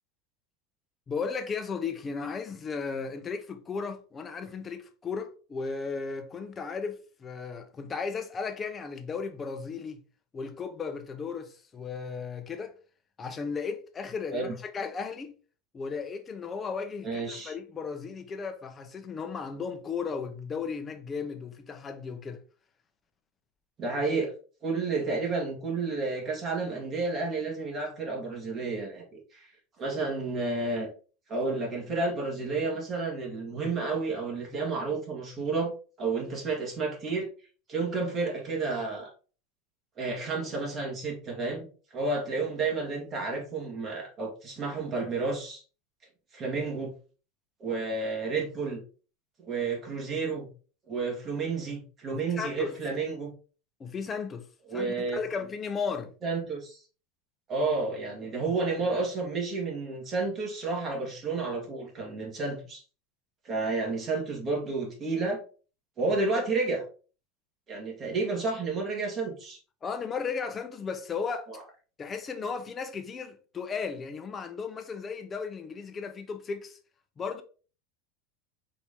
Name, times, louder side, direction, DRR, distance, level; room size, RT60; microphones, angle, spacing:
voice 1, 1.1-10.0 10.3-12.8 13.2-15.3 15.7-22.4 52.1-52.8 53.8-54.4 54.7-56.1 69.8-71.5 72.0-76.8 77.2-77.4, left 5 dB, 25° left, 0.7 m, -35 dB
voice 2, 17.0-17.5 23.8-24.3 24.6-29.0 29.3-29.5 29.8-30.9 31.3-35.7 36.0-37.3 37.7-39.1 40.0-41.7 41.9-45.6 46.3-46.9 47.6-48.8 49.4-50.5 50.9-53.3 54.7-55.2 56.2-56.8 57.5-62.8 63.4-65.4 66.0-66.8 67.7-69.6 71.5-71.6, right 3 dB, 30° right, 1.6 m, -31 dB
4.3 x 2.7 x 3.5 m
supercardioid pair, 125°, 0 cm